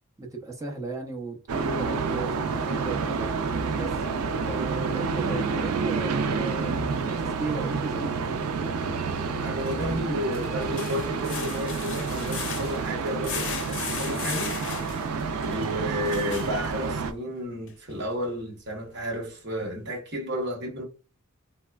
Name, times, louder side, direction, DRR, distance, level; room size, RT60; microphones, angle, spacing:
voice 1, 0.2-3.3 3.7-4.0 4.5-8.4, right 3 dB, 15° right, 0.6 m, -36 dB
sound 1, 1.5-17.1, right 4 dB, 75° right, 0.4 m, -29 dB
sound 2, 6.9-7.0 9.5-17.1 17.7-17.8 18.2-18.3, left 6 dB, 60° left, 0.6 m, -37 dB
voice 2, 9.4-14.6 15.4-20.8, equal, 55° right, 1.0 m, -32 dB
3.2 x 2.0 x 2.2 m
head